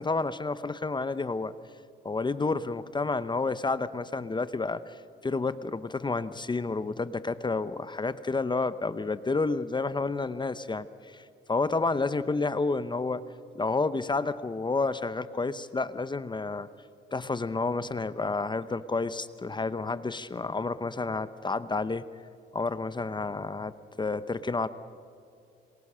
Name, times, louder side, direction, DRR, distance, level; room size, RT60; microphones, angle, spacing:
voice 1, 0.0-1.5 2.0-5.0 5.2-13.2 13.5-16.7 17.1-22.1 22.5-23.7 24.0-24.7, left 3 dB, 25° left, 14 dB, 0.8 m, -30 dB
26.5 x 23.0 x 6.3 m, 2.5 s
cardioid pair, 90°, 20 cm